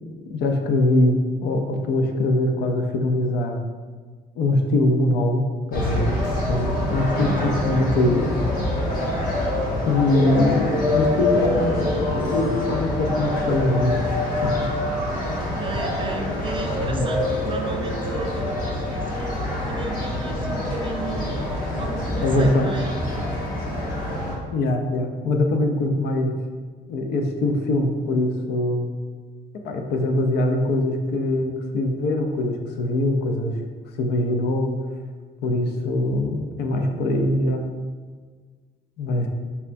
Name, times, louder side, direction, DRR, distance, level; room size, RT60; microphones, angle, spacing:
voice 1, 0.2-3.6 4.4-5.4 5.7-6.1 6.5-8.2 9.8-14.0 14.4-14.7 16.8-17.0 22.2-22.7 24.5-26.3 26.9-28.9 29.6-33.5 34.0-34.8 35.4-37.7 39.0-39.3, left 1 dB, 75° left, 4 dB, 0.5 m, -22 dB
sound 1, 5.7-24.3, left 1 dB, 60° left, 1.2 m, -25 dB
voice 2, 6.6-7.9 15.3-23.0, right 4 dB, 30° right, 3 dB, 0.4 m, -35 dB
5.5 x 2.3 x 2.5 m, 1.5 s
cardioid pair, 110°, 17 cm